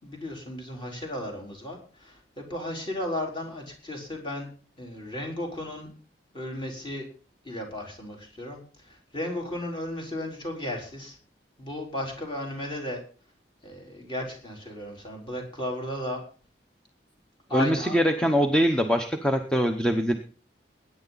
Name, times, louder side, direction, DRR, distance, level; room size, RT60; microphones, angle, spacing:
voice 1, 0.0-4.5 4.8-5.9 6.3-7.1 7.4-11.2 11.6-13.0 13.6-16.2 17.5-18.0, left 1 dB, 25° left, 0 dB, 4.3 m, -34 dB
voice 2, 17.5-20.1, equal, 5° left, 5 dB, 0.9 m, -23 dB
21.0 x 9.9 x 4.1 m, 0.38 s
head